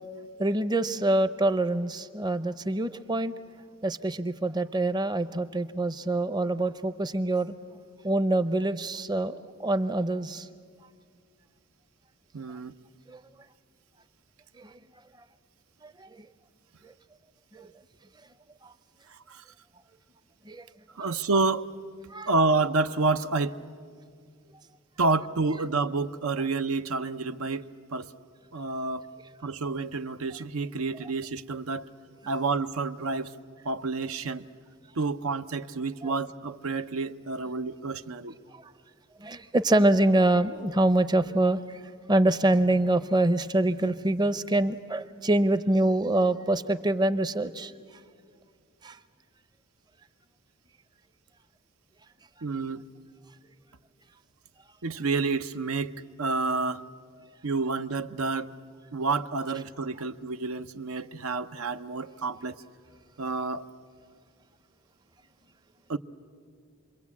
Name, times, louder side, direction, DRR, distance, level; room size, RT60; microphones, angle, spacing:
voice 1, 0.4-3.3 3.8-7.5 8.0-10.5 13.1-13.2 14.6-14.8 15.8-16.3 16.8-16.9 17.5-17.7 20.5-20.6 22.1-22.3 36.0-36.1 38.5-38.6 39.2-41.8 42.1-47.7 48.8-49.0, right 1 dB, 20° right, 0.6 m, -25 dB
voice 2, 12.3-12.7 19.1-19.4 20.9-21.7 22.3-23.6 25.0-28.1 28.5-29.0 29.4-31.9 32.3-33.4 33.6-34.5 35.0-38.3 52.4-52.9 54.8-56.8 57.4-58.6 58.9-62.6 63.2-63.6 65.9-66.0, right 3 dB, 80° right, 0.7 m, -29 dB
28.0 x 22.5 x 8.4 m
head